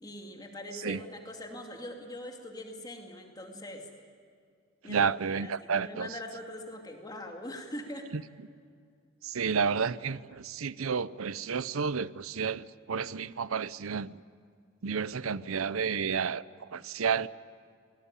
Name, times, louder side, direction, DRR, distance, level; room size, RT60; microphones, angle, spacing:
voice 1, 0.0-3.9 4.8-5.1 5.4-8.1, left 1 dB, 20° left, 2.6 m, -42 dB
voice 2, 4.8-6.2 8.1-8.2 9.2-14.2 14.8-17.3, right 6 dB, 90° right, 0.6 m, -31 dB
26.0 x 19.0 x 9.9 m
head